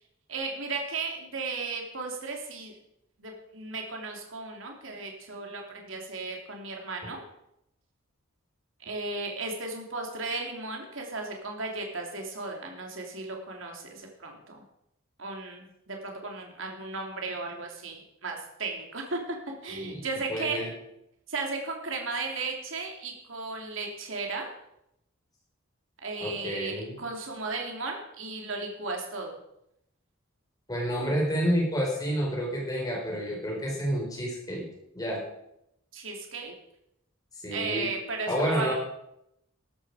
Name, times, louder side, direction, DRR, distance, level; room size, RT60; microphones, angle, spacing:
voice 1, 0.3-2.7 3.2-7.2 8.8-14.6 15.2-20.6 21.3-24.5 26.0-29.3 35.9-36.5 37.5-38.7, right 3 dB, 65° right, 1 dB, 3.0 m, -35 dB
voice 2, 19.7-20.0 20.3-20.7 26.2-27.0 30.7-34.7 34.9-35.2 37.4-37.9 38.3-38.7, equal, 20° left, -1 dB, 4.8 m, -29 dB
13.5 x 12.5 x 5.0 m, 0.81 s
head